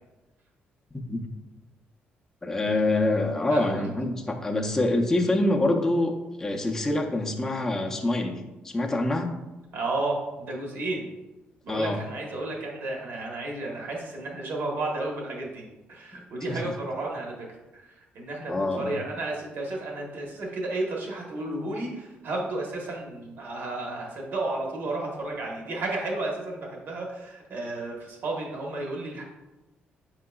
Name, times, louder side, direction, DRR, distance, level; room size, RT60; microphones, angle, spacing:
voice 1, 2.4-9.3 11.7-12.0 18.5-19.0, left 2 dB, 10° left, 0 dB, 0.5 m, -26 dB
voice 2, 3.5-3.8 9.7-11.1 11.6-17.5 17.7-29.2, right 2 dB, 60° right, -1 dB, 1.1 m, -32 dB
5.2 x 3.7 x 2.3 m, 1.1 s
cardioid pair, 115°, 4 cm